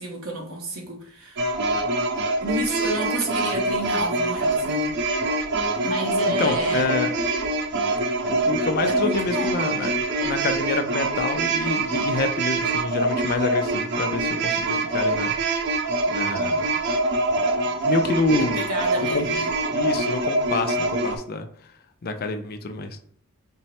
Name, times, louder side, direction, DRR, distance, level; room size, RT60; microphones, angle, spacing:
voice 1, 0.0-1.5 2.4-5.0 5.8-6.9 8.8-9.6 18.3-19.5, right 1 dB, 80° right, 1.0 m, -31 dB
sound 1, 1.4-21.2, right 2 dB, 55° right, 0.5 m, -24 dB
voice 2, 6.4-7.1 8.3-9.9 10.2-15.8 16.1-16.7 17.8-18.6 19.1-19.3 19.7-21.5 22.0-23.0, left 3 dB, 45° left, 0.5 m, -27 dB
4.4 x 2.1 x 4.1 m
head